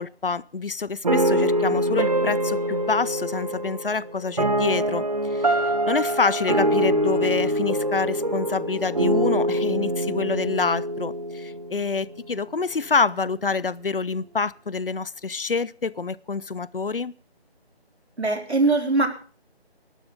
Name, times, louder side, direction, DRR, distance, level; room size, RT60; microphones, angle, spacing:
voice 1, 0.0-5.0 5.3-17.1, left 4 dB, 60° left, 0.7 m, -27 dB
sound 1, 1.0-12.2, right 1 dB, 40° right, 1.2 m, -24 dB
voice 2, 18.2-19.1, right 3 dB, 85° right, 4.1 m, -21 dB
19.5 x 12.5 x 3.9 m
figure-of-eight pair, 165°, 32 cm